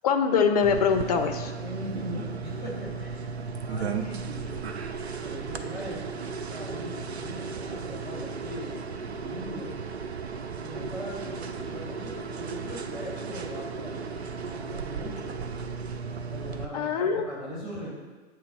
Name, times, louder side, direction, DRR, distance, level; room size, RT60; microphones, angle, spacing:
voice 1, 0.0-1.5 16.7-17.3, left 6 dB, 35° left, 7 dB, 0.5 m, -23 dB
sound 1, 0.6-16.6, right 5 dB, 80° right, 0.5 m, -35 dB
voice 2, 1.6-3.3 3.6-4.7 5.2-9.8 10.5-15.3 16.3-17.9, equal, ahead, -5 dB, 1.8 m, -40 dB
7.1 x 3.1 x 4.8 m, 1.3 s
figure-of-eight pair, 110°, 32 cm